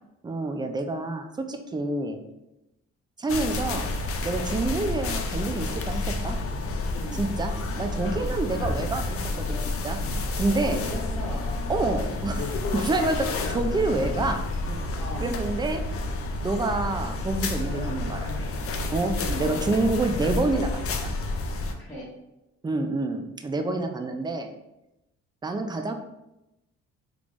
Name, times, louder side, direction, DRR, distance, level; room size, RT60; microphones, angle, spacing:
voice 1, 0.2-2.2 3.2-3.9 4.2-6.4 7.1-9.6 9.8-10.0 10.4-10.8 11.7-14.8 15.2-15.8 16.4-18.3 18.9-20.7 22.6-24.5 25.4-25.9, right 2 dB, 15° right, 6 dB, 0.4 m, -28 dB
sound 1, 3.3-21.7, left 2 dB, 50° left, 0.5 m, -30 dB
voice 2, 6.8-7.2 8.0-8.3 10.6-11.5 12.1-12.2 15.0-15.4 19.1-19.4 21.8-22.1, equal, 5° left, -8 dB, 0.9 m, -38 dB
3.4 x 3.3 x 2.5 m, 0.93 s
cardioid pair, 90°, 30 cm